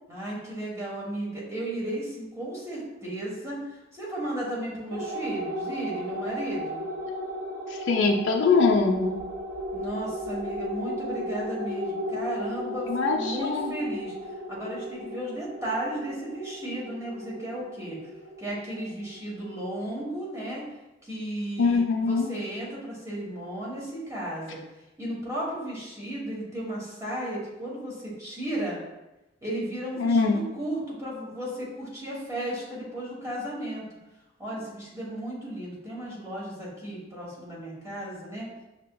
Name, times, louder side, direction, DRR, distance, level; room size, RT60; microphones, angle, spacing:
voice 1, 0.1-6.8 9.7-14.1 14.5-18.0 18.4-20.7 21.0-24.6 25.0-28.8 29.4-33.8 34.4-38.5, right 1 dB, 15° right, -5 dB, 1.1 m, -34 dB
sound 1, 4.9-19.7, equal, 70° right, 1.4 m, -35 dB
voice 2, 7.9-9.2 12.9-13.7 21.6-22.3 30.0-30.4, left 4 dB, 70° left, 0 dB, 0.5 m, -22 dB
5.8 x 2.8 x 2.2 m, 0.99 s
head